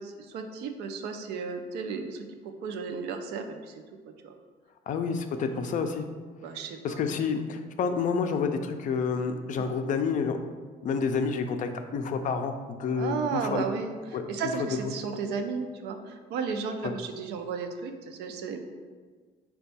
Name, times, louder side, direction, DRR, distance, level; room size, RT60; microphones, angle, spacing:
voice 1, 0.0-2.3 2.6-3.7 4.2-4.3 5.3-5.4 6.4-7.0 9.5-9.7 12.9-13.9 14.3-18.6, right 5 dB, 80° right, 5 dB, 0.5 m, -34 dB
voice 2, 4.9-6.1 6.8-10.4 10.8-13.6 14.1-14.2 16.8-16.9, left 5 dB, 50° left, 7 dB, 0.4 m, -29 dB
4.3 x 2.2 x 4.0 m, 1.5 s
cardioid pair, 110°, 17 cm